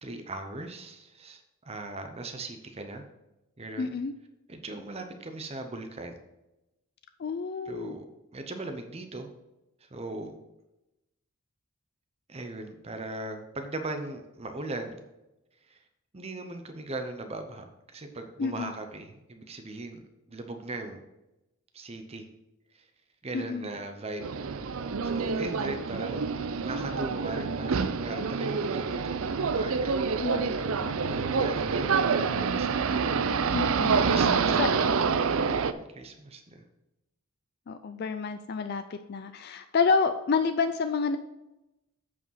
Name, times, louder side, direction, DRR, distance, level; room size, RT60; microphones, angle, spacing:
voice 1, 0.0-3.0 3.6-4.0 4.5-6.2 7.7-8.1 8.3-9.3 9.8-10.4 12.3-15.0 15.7-15.8 16.1-20.0 20.3-21.0 21.7-22.3 22.7-22.9 23.2-24.3 25.0-26.3 26.6-30.0 31.1-33.0 34.0-34.8 35.3-36.6, right 2 dB, 30° right, 6 dB, 0.7 m, -39 dB
voice 2, 3.8-4.1 7.2-8.0 18.4-18.7 23.3-23.7 30.2-31.2 33.5-34.0 34.6-34.7 37.7-41.2, left 5 dB, 45° left, 9 dB, 0.4 m, -29 dB
sound 1, 24.2-35.7, right 5 dB, 70° right, 0.5 m, -27 dB
8.4 x 4.9 x 5.7 m, 0.95 s
head